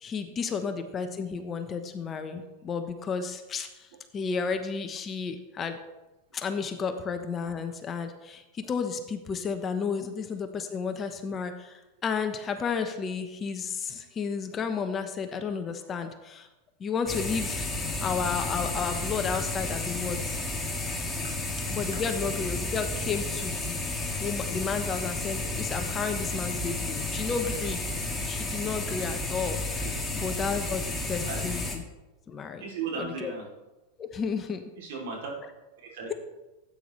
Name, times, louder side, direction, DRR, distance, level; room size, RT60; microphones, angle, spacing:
voice 1, 0.0-5.8 6.3-16.5 16.8-17.7 18.0-20.4 21.7-27.8 28.3-31.8 32.3-32.6 33.0-33.3 34.0-34.6, left 5 dB, 30° left, 7 dB, 1.0 m, -32 dB
sound 1, 17.1-31.8, left 2 dB, 10° left, 1.6 m, -32 dB
voice 2, 29.8-30.2 31.2-31.4 32.6-33.5 34.8-35.3 35.8-36.1, right 5 dB, 75° right, -1 dB, 3.0 m, -36 dB
13.0 x 8.9 x 3.2 m, 1.0 s
hypercardioid pair, 115°, 0 cm